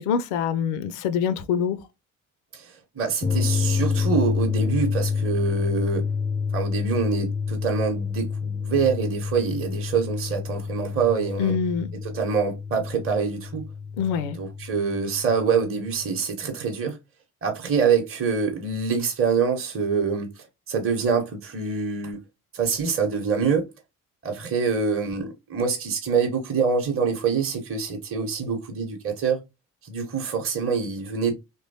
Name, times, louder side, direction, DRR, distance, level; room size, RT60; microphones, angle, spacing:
voice 1, 0.0-1.8 11.4-11.9 14.0-14.4, left 7 dB, 70° left, 0.5 m, -25 dB
voice 2, 2.5-6.0 6.5-11.6 12.0-13.7 14.3-17.0 17.4-22.2 22.5-23.7 24.2-29.4 29.8-31.3, right 5 dB, 30° right, 0.8 m, -25 dB
sound 1, 3.2-16.1, left 5 dB, 10° left, 0.4 m, -28 dB
3.0 x 2.2 x 2.6 m
figure-of-eight pair, 45°, 44 cm